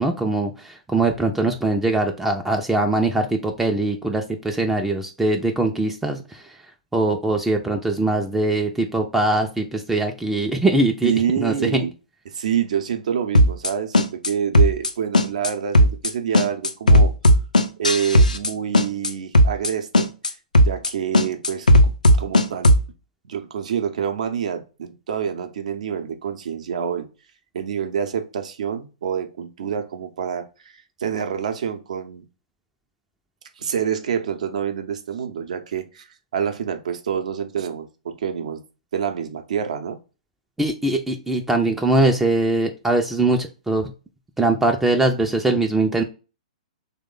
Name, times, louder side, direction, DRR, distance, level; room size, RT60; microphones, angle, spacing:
voice 1, 0.0-6.4 6.9-11.1 11.4-11.8 40.6-43.9 44.4-46.0, right 2 dB, 5° right, 0.4 m, -21 dB
voice 2, 11.0-11.9 12.3-17.1 17.8-20.1 20.6-21.9 22.2-22.7 23.2-27.1 27.5-32.2 33.6-36.1 36.3-38.6 38.9-40.0, right 8 dB, 65° right, 0.6 m, -27 dB
sound 1, 13.3-13.7 13.9-14.3 14.5-14.9 15.1-15.5 15.7-16.1 16.3-18.5 18.7-19.1 19.3-19.7 19.9-20.3 20.5-20.9 21.1-22.8, equal, 85° left, 0.5 m, -15 dB
3.0 x 2.1 x 3.6 m
figure-of-eight pair, 115°, 4 cm